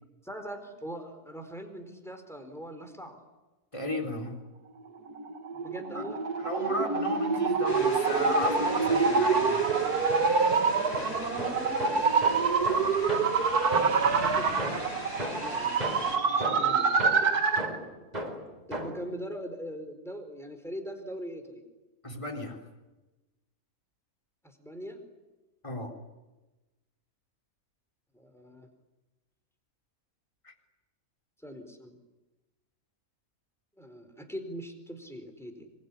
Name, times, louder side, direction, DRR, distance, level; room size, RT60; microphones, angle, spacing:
voice 1, 0.2-3.2 5.5-6.2 11.3-11.9 13.9-14.9 15.1-17.1 18.7-21.6 24.4-25.0 28.1-28.7 31.4-32.0 33.8-35.7, equal, ahead, 6 dB, 4.3 m, -42 dB
voice 2, 3.7-4.4 5.9-6.1 6.4-9.6 22.0-22.6 25.6-25.9 30.4-30.5, left 2 dB, 20° left, 2 dB, 3.8 m, -35 dB
sound 1, 5.1-17.8, right 5 dB, 85° right, 2.2 m, -26 dB
sound 2, 7.7-16.2, left 1 dB, 45° left, 5.9 m, -39 dB
Metallic Hollow Thuds Various, 8.2-9.3 9.7-14.2 14.6-19.1, right 1 dB, 25° right, 4.5 m, -38 dB
25.5 x 23.5 x 9.8 m, 1.1 s
omnidirectional pair, 1.6 m